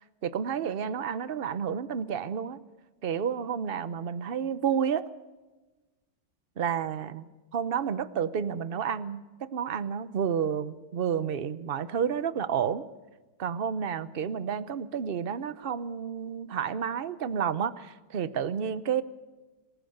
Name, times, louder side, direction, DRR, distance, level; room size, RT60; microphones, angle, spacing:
voice 1, 0.2-2.6 3.0-5.1 6.6-12.9 13.4-19.0, right 7 dB, 55° right, 15 dB, 0.6 m, -30 dB
27.0 x 15.5 x 6.6 m, 1.2 s
omnidirectional pair, 2.0 m